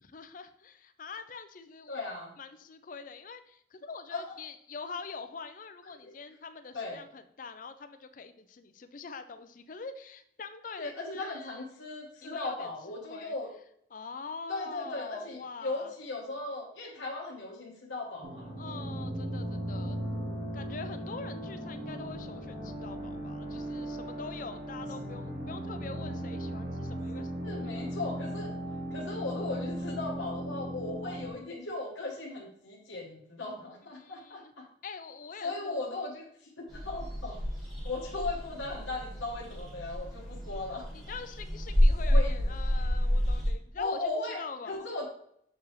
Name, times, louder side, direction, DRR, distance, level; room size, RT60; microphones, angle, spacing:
voice 1, 0.0-2.0 2.4-11.6 12.2-13.3 13.9-15.9 18.6-20.0 20.5-27.9 33.9-34.5 34.8-35.9 40.9-44.9, left 4 dB, 45° left, 9 dB, 0.4 m, -44 dB
voice 2, 1.9-2.3 4.1-4.4 6.0-6.1 6.7-7.0 10.8-13.5 14.5-18.5 27.4-28.5 28.9-34.6 35.4-37.4 37.8-40.9 42.0-42.3 43.8-45.1, left 2 dB, 80° left, -2 dB, 1.1 m, -37 dB
sound 1, 18.2-31.3, equal, 55° right, 1.5 m, -37 dB
sound 2, 36.7-43.5, equal, ahead, 1.6 m, -29 dB
6.7 x 4.7 x 3.2 m, 0.70 s
head